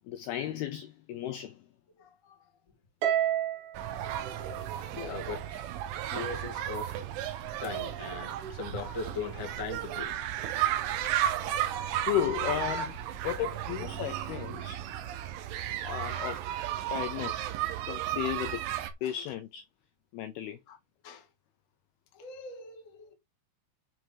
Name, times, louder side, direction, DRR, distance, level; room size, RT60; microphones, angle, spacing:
voice 1, 0.1-1.6 12.0-14.8 15.8-16.4 16.9-17.4 17.9-18.6 19.0-19.6 20.1-20.6, left 11 dB, 85° left, 2.2 m, -34 dB
Harp, 3.0-5.5, right 11 dB, 70° right, 3.5 m, -31 dB
sound 1, 3.7-18.9, right 11 dB, 90° right, 3.7 m, -34 dB
voice 2, 4.9-5.6 6.1-6.9 7.6-10.1 14.5-14.7 15.5-15.8 16.1-16.2 17.1-17.3 19.0-19.1 20.7-20.8 21.0-21.2 22.1-23.1, left 4 dB, 40° left, 1.1 m, -40 dB
9.1 x 4.9 x 5.8 m
omnidirectional pair, 5.4 m